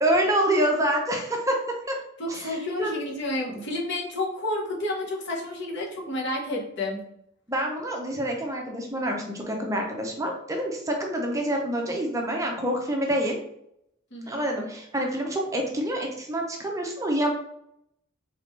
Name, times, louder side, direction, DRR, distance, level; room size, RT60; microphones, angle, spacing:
voice 1, 0.0-2.0 2.3-2.9 7.5-13.4 14.3-17.3, right 1 dB, 15° right, 1 dB, 0.6 m, -27 dB
voice 2, 2.2-7.0 14.1-14.5, left 1 dB, 60° left, -2 dB, 1.1 m, -30 dB
4.0 x 3.7 x 3.2 m, 0.76 s
head